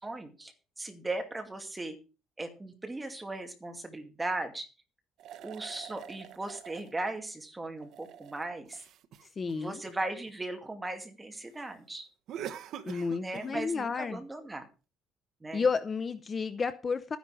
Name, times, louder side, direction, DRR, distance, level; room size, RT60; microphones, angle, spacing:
voice 1, 0.0-2.0 2.4-4.7 5.4-8.8 9.6-12.1 13.1-14.7 15.4-15.7, right 2 dB, 15° right, 5 dB, 2.4 m, -38 dB
sound 1, 5.2-6.9 7.7-10.3 12.3-13.6, right 10 dB, 60° right, 1.0 m, -45 dB
voice 2, 9.4-9.8 12.9-14.2 15.5-17.2, left 5 dB, 30° left, 12 dB, 0.8 m, -31 dB
13.0 x 10.5 x 4.9 m, 0.32 s
cardioid pair, 140°, 0 cm